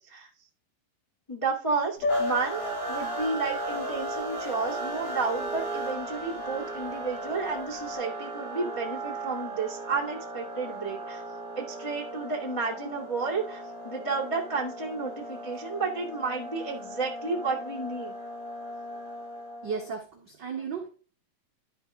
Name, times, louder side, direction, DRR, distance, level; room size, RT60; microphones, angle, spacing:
voice 1, 1.3-2.6 2.9-11.2 11.5-18.1, right 4 dB, 40° left, -4 dB, 0.4 m, -31 dB
Piano, 2.0-7.9, left 2 dB, 65° left, 3.1 m, -35 dB
sound 1, 2.1-19.9, right 2 dB, 85° left, 5.5 m, -37 dB
voice 2, 19.6-20.9, right 6 dB, 80° right, -3 dB, 1.0 m, -34 dB
12.0 x 4.9 x 3.7 m, 0.39 s
omnidirectional pair, 4.5 m